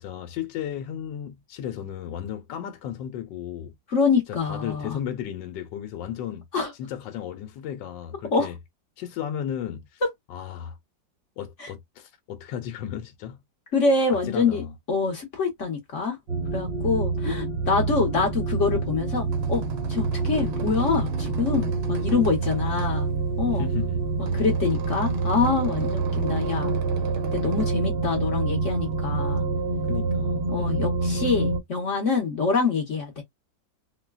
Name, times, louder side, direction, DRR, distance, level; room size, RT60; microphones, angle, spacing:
voice 1, 0.0-3.7 4.5-6.5 6.8-8.6 9.0-10.0 10.3-10.8 11.4-13.4 14.3-14.7 23.6-24.0 29.9-30.9, left 9 dB, 85° left, 1.3 m, -34 dB
voice 2, 3.9-5.0 6.5-6.7 8.3-8.5 11.6-11.7 13.7-16.2 16.5-19.6 19.9-23.1 23.4-23.7 24.2-26.7 27.3-29.4 30.5-33.2, left 4 dB, 50° left, 1.1 m, -25 dB
sound 1, 16.3-31.6, right 4 dB, 50° right, 0.8 m, -27 dB
sound 2, 19.0-27.7, right 9 dB, 75° right, 1.3 m, -40 dB
3.8 x 2.1 x 2.2 m
omnidirectional pair, 2.0 m